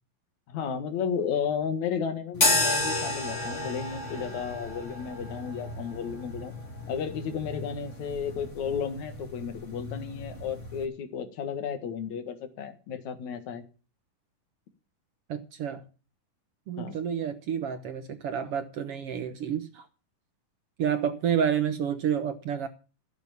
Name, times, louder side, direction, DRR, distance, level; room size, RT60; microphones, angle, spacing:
voice 1, 0.5-6.5 6.9-13.6 16.8-17.0, left 7 dB, 65° left, 2.9 m, -33 dB
sound 1, 2.3-10.9, left 2 dB, 25° left, 2.8 m, -32 dB
voice 2, 15.3-15.8 16.7-19.9 20.8-22.7, right 8 dB, 65° right, 1.6 m, -29 dB
14.5 x 8.2 x 7.1 m
omnidirectional pair, 3.8 m